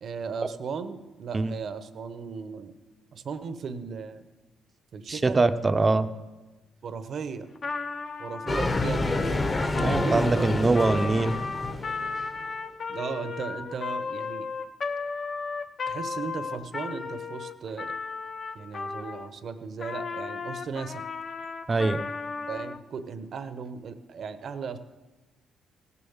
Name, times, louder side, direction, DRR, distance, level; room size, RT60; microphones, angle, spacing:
voice 1, 0.0-2.7 3.1-4.2 4.9-5.4 6.8-7.5 8.2-9.5 9.8-10.5 12.9-14.5 15.9-17.9 18.5-21.0 22.5-24.8, right 5 dB, 55° right, 11 dB, 0.9 m, -36 dB
voice 2, 5.1-6.1 9.8-11.4 21.7-22.0, right 3 dB, 30° right, 10 dB, 0.7 m, -23 dB
Trumpet, 7.6-19.3 19.8-22.8, left 4 dB, 50° left, 1.0 m, -35 dB
sound 1, 8.5-12.4, left 2 dB, 25° left, 1.1 m, -28 dB
16.5 x 7.0 x 7.2 m, 1.2 s
cardioid pair, 90°, 0 cm